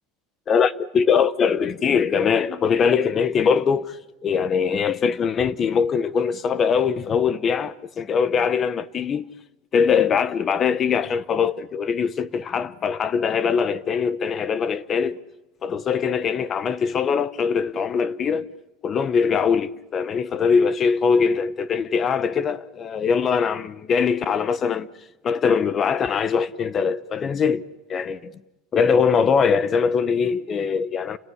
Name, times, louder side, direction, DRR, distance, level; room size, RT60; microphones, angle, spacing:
voice 1, 0.5-9.3 9.7-15.2 15.6-18.5 18.8-24.9 25.2-27.6 27.9-28.3 28.7-31.2, left 6 dB, 30° left, 0.9 m, -22 dB
30.0 x 18.0 x 8.4 m
supercardioid pair, 145°, 0 cm